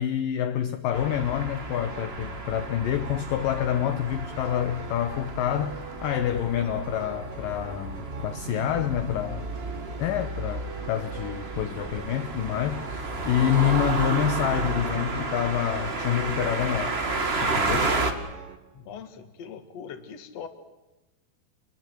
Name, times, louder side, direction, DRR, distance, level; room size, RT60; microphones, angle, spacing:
voice 1, 0.0-9.5 10.0-17.0 17.4-18.0, left 10 dB, 70° left, 2.3 m, -27 dB
sound 1, 0.9-18.1, right 3 dB, 75° right, 0.5 m, -32 dB
sound 2, 1.9-18.6, right 7 dB, 50° right, 2.8 m, -44 dB
voice 2, 18.7-20.5, left 7 dB, 50° left, 2.5 m, -41 dB
28.5 x 22.0 x 7.9 m
omnidirectional pair, 4.8 m